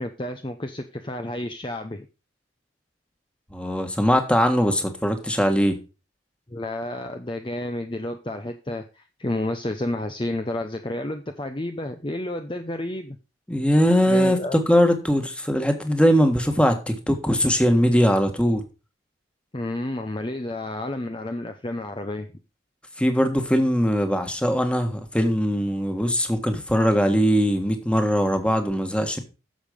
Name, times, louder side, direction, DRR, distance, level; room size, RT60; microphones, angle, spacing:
voice 1, 0.0-2.0 6.5-13.2 14.0-14.6 19.5-22.3, left 1 dB, 25° left, 0.8 m, -30 dB
voice 2, 3.5-5.8 13.5-18.6 23.0-29.2, equal, 5° left, 1.6 m, -21 dB
11.5 x 7.3 x 5.2 m
head